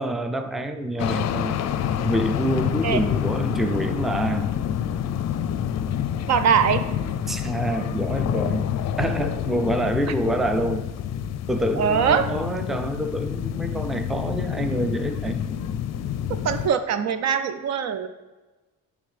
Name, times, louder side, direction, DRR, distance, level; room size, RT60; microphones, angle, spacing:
voice 1, 0.0-1.6 2.0-4.5 7.3-8.7 9.0-10.9 11.5-15.4, right 1 dB, ahead, 7 dB, 0.4 m, -26 dB
sound 1, 1.0-16.7, left 9 dB, 60° left, 0.5 m, -27 dB
voice 2, 6.3-6.8 11.8-12.3 16.4-18.1, right 7 dB, 60° right, 10 dB, 0.5 m, -21 dB
9.1 x 3.5 x 3.3 m, 1.2 s
cardioid pair, 90°, 30 cm